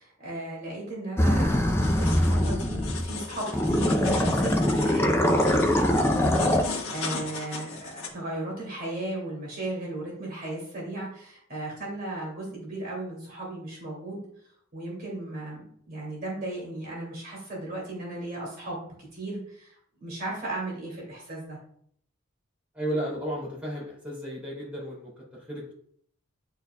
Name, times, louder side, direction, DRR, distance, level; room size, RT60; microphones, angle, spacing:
voice 1, 0.0-14.2 14.7-19.7 20.0-21.6, right 2 dB, 45° right, -4 dB, 2.6 m, -36 dB
sound 1, 1.2-3.1 3.5-6.6, left 1 dB, 10° left, 0.5 m, -23 dB
sound 2, 1.8-8.1, left 4 dB, 75° left, 1.3 m, -36 dB
voice 2, 22.7-25.7, right 1 dB, 5° right, -7 dB, 2.7 m, -34 dB
10.5 x 4.5 x 2.3 m, 0.62 s
head